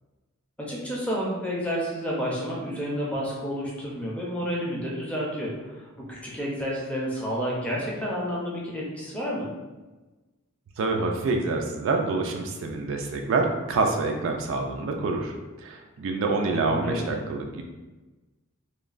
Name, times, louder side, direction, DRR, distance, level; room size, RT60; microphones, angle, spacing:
voice 1, 0.6-9.5 16.6-17.3, equal, 5° left, -5 dB, 0.5 m, -30 dB
voice 2, 10.8-15.3 15.6-17.6, right 3 dB, 60° right, 2 dB, 0.3 m, -26 dB
3.1 x 2.2 x 2.4 m, 1.2 s
head